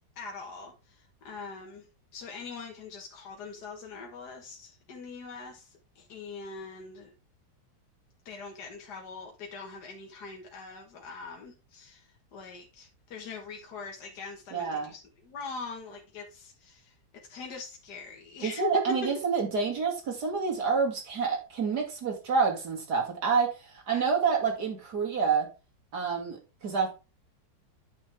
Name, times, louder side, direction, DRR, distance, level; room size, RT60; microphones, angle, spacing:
voice 1, 0.2-1.9 2.1-7.1 8.3-19.1 23.9-24.0, left 4 dB, 70° left, 1.9 m, -42 dB
voice 2, 14.5-14.9 18.4-25.5 25.9-26.9, right 5 dB, 65° right, 2.9 m, -28 dB
9.9 x 6.3 x 3.4 m
omnidirectional pair, 1.9 m